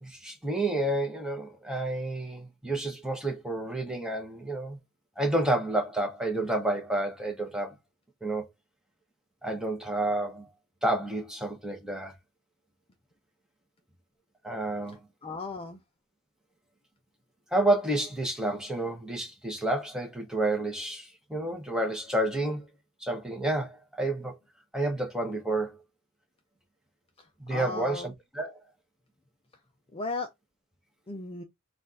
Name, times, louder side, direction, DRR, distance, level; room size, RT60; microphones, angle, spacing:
voice 1, 0.0-4.8 5.2-7.7 8.2-8.4 9.4-10.5 10.8-12.1 14.4-15.0 17.5-22.6 23.0-24.4 24.7-25.8 27.4-28.6, right 1 dB, 5° right, 1.1 m, -30 dB
voice 2, 15.2-15.8 27.5-28.1 29.9-30.3 31.1-31.4, left 3 dB, 25° left, 0.6 m, -35 dB
4.3 x 2.5 x 4.0 m
head